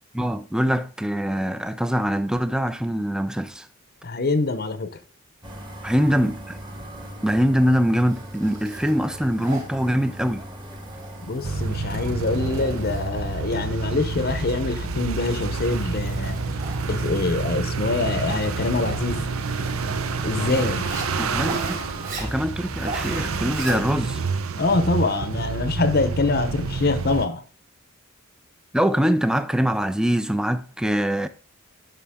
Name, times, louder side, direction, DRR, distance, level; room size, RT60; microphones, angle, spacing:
voice 1, 0.1-3.7 5.8-6.6 7.2-10.4 21.2-21.8 22.2-24.2 28.7-31.3, equal, 5° right, 0.5 m, -23 dB
voice 2, 4.0-5.0 11.3-16.4 16.9-19.2 20.2-21.0 24.6-27.4, left 3 dB, 45° left, 0.7 m, -24 dB
sound 1, 5.4-23.5, right 1 dB, 20° right, 1.4 m, -37 dB
Zipper (clothing), 8.1-24.3, right 3 dB, 40° right, 3.0 m, -40 dB
sound 2, 11.4-27.3, right 4 dB, 75° right, 0.7 m, -29 dB
11.5 x 5.6 x 3.6 m
head